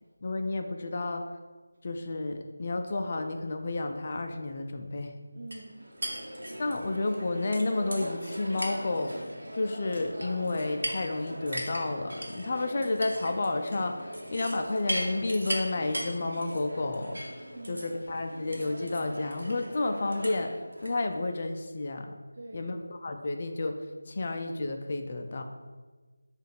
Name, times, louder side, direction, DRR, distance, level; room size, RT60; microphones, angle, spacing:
voice 1, 0.2-1.3 1.8-5.2 6.6-9.1 9.5-17.2 17.7-20.6 20.8-22.1 22.5-25.4, left 2 dB, 40° left, 5 dB, 0.4 m, -31 dB
voice 2, 5.3-6.3 17.4-18.0 22.3-22.7, right 2 dB, 45° right, -2 dB, 0.4 m, -46 dB
sound 1, 5.5-20.9, right 1 dB, 70° right, 0.9 m, -39 dB
5.5 x 2.4 x 3.4 m, 1.3 s
figure-of-eight pair, 165°, 0 cm